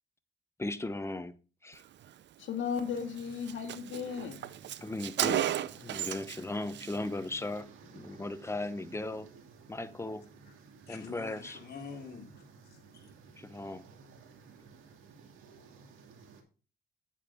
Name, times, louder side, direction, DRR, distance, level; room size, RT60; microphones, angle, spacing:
voice 1, 0.6-1.3 1.6-1.8 4.8-5.4 5.8-9.3 9.7-10.2 10.9-11.6 13.4-13.8, left 2 dB, 15° left, 0.9 m, -37 dB
voice 2, 2.4-4.5, left 6 dB, 70° left, 2.2 m, -35 dB
Car, 2.8-2.9 3.2-3.3 3.5-6.4 6.7-7.0, right 11 dB, 65° right, 0.7 m, -33 dB
sound 1, 2.8-16.4, right 5 dB, 85° right, 2.4 m, -55 dB
voice 3, 10.9-13.1, left 5 dB, 55° left, 3.4 m, -47 dB
8.9 x 8.4 x 3.7 m
cardioid pair, 90°, 20 cm